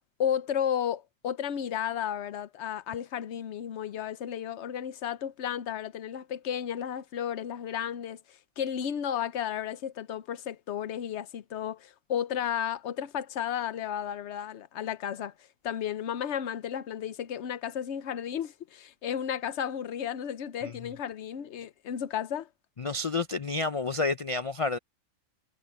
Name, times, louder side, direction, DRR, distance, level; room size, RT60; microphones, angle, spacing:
voice 1, 0.2-15.3 15.6-22.5, left 9 dB, 65° left, 1.0 m, -33 dB
voice 2, 22.8-24.8, left 3 dB, 45° left, 0.4 m, -29 dB
omnidirectional pair, 1.4 m